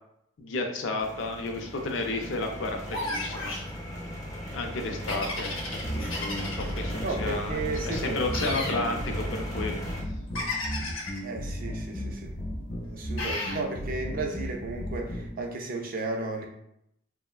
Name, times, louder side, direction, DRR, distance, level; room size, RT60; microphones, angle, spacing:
voice 1, 0.4-3.5 4.5-9.7, left 2 dB, 65° left, 3 dB, 0.4 m, -32 dB
sound 1, 1.0-10.0, equal, 15° left, 0.6 m, -37 dB
sound 2, 2.9-3.7 5.1-6.8 8.3-8.8 10.3-11.2 13.2-13.6, left 2 dB, 85° left, 0.8 m, -33 dB
sound 3, 5.8-15.3, equal, 45° left, 1.0 m, -35 dB
voice 2, 7.0-8.6 11.2-12.3 12.7-16.5, right 3 dB, 45° right, 2 dB, 0.4 m, -34 dB
3.1 x 2.0 x 2.3 m, 0.77 s
head